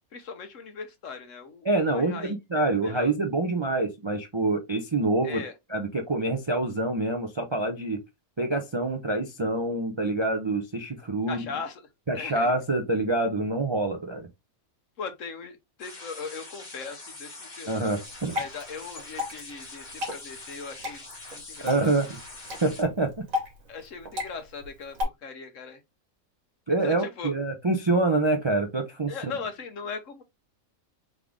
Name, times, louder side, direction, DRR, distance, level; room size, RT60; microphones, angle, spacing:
voice 1, 0.1-3.1 5.2-5.5 11.3-11.8 12.1-12.6 15.0-17.9 18.3-21.0 21.3-22.0 23.7-25.8 26.8-27.3 29.1-30.2, left 5 dB, 65° left, 1.2 m, -39 dB
voice 2, 1.6-5.4 5.7-8.0 8.4-11.5 12.1-14.3 17.7-18.4 21.6-22.1 22.6-23.1 26.7-29.3, right 2 dB, 35° right, 0.4 m, -26 dB
sound 1, 15.8-22.8, left 3 dB, 30° left, 1.7 m, -44 dB
Water / Drip, 18.0-25.0, left 4 dB, 70° right, 1.7 m, -36 dB
3.7 x 3.6 x 3.5 m
omnidirectional pair, 1.5 m